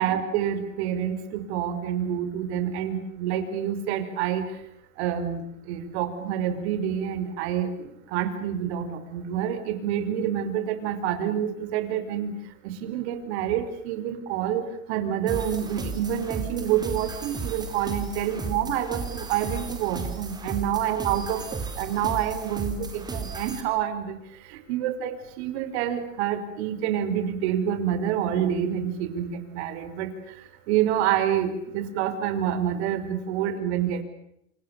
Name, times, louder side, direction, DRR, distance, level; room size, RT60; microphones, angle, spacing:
voice 1, 0.0-4.4 5.0-12.3 12.6-14.6 14.9-24.2 24.5-30.1 30.7-34.0, right 9 dB, 50° right, 9 dB, 5.3 m, -27 dB
sound 1, 15.3-23.6, right 4 dB, 10° right, 4.2 m, -34 dB
29.0 x 27.5 x 6.9 m, 0.77 s
supercardioid pair, 145°, 41 cm